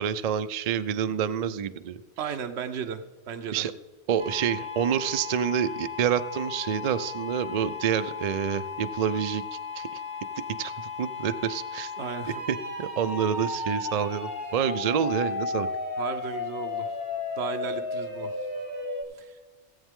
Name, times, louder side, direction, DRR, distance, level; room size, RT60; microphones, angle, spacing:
voice 1, 0.0-2.0 3.5-3.7 4.1-10.0 10.6-11.9 12.5-15.7, right 8 dB, 55° right, 12 dB, 0.4 m, -28 dB
voice 2, 2.2-3.6 12.0-12.3 16.0-16.9 17.4-18.3 19.2-19.4, right 7 dB, 75° right, 6 dB, 1.0 m, -34 dB
sound 1, 4.2-19.0, left 4 dB, 75° left, 2.7 m, -35 dB
17.0 x 8.1 x 3.6 m, 1.3 s
omnidirectional pair, 1.1 m